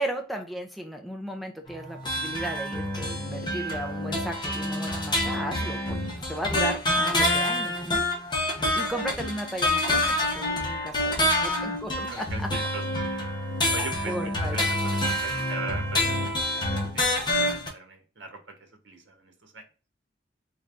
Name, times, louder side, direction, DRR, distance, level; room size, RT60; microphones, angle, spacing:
voice 1, 0.0-8.0 8.8-11.2 11.4-12.5 13.6-13.8 14.0-14.6, right 1 dB, ahead, 2 dB, 0.4 m, -35 dB
sound 1, 1.7-17.7, left 1 dB, 25° left, 0.9 m, -27 dB
voice 2, 12.1-12.8 13.7-14.1 14.4-19.6, right 3 dB, 70° right, 5 dB, 1.1 m, -40 dB
3.9 x 3.3 x 2.5 m, 0.35 s
head